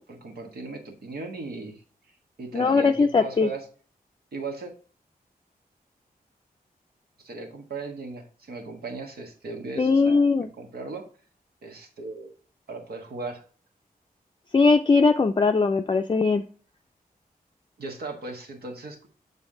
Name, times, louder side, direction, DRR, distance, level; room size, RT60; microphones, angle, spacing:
voice 1, 0.1-1.8 2.4-3.6 4.3-4.7 7.2-10.2 10.6-11.0 11.6-12.3 12.7-13.4 17.8-19.1, right 3 dB, 90° right, 3 dB, 1.3 m, -37 dB
voice 2, 2.5-3.5 9.8-10.5 14.5-16.4, left 4 dB, 30° left, 5 dB, 0.4 m, -20 dB
7.1 x 4.1 x 3.7 m, 0.39 s
cardioid pair, 65°, 16 cm